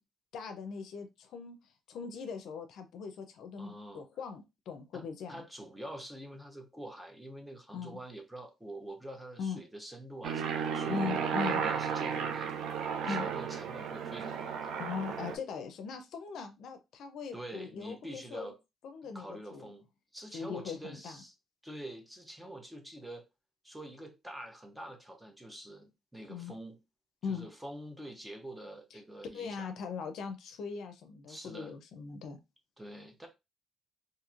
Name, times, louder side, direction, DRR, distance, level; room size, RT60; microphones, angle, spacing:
voice 1, 0.3-1.6 1.9-5.4 7.7-8.0 9.4-9.6 10.9-11.6 13.0-13.3 14.8-18.5 18.8-19.7 20.3-21.2 26.3-26.5 27.2-27.5 29.3-32.4, left 5 dB, 75° left, 0.5 m, -40 dB
voice 2, 3.6-4.0 4.9-12.5 13.0-14.7 17.3-18.6 19.0-21.3 21.6-23.3 23.6-26.8 27.3-29.7 31.3-31.7 32.8-33.3, right 1 dB, 10° right, 0.8 m, -46 dB
Aircraft, 10.2-15.4, right 6 dB, 85° right, 0.4 m, -34 dB
2.9 x 2.6 x 2.4 m
cardioid pair, 90°, 0 cm